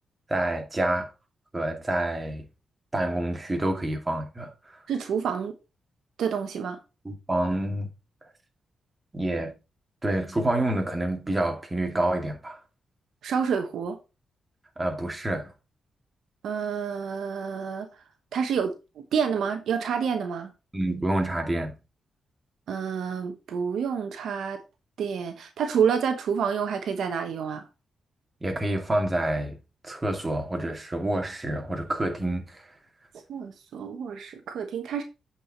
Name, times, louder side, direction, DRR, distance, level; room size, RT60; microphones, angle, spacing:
voice 1, 0.3-1.1 1.5-2.4 2.9-4.5 7.0-7.9 9.1-9.5 10.0-12.6 14.8-15.5 20.7-21.8 28.4-29.6 29.8-32.7, right 1 dB, 20° right, 2.4 m, -28 dB
voice 2, 4.9-5.5 6.2-6.8 13.2-14.0 16.4-17.9 18.3-20.5 22.7-24.6 25.0-27.6 33.3-35.0, right 7 dB, 80° right, 1.0 m, -28 dB
7.9 x 4.8 x 4.1 m
cardioid pair, 60°, 0 cm